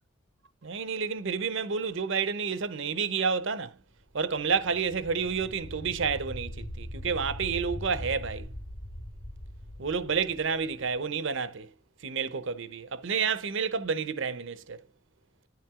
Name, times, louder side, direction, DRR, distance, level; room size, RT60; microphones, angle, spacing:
voice 1, 0.6-3.7 4.1-8.5 9.8-11.7 12.0-14.8, right 5 dB, 65° right, 0.8 m, -30 dB
sound 1, 4.3-11.0, equal, 60° left, 1.5 m, -41 dB
10.5 x 5.9 x 3.6 m
head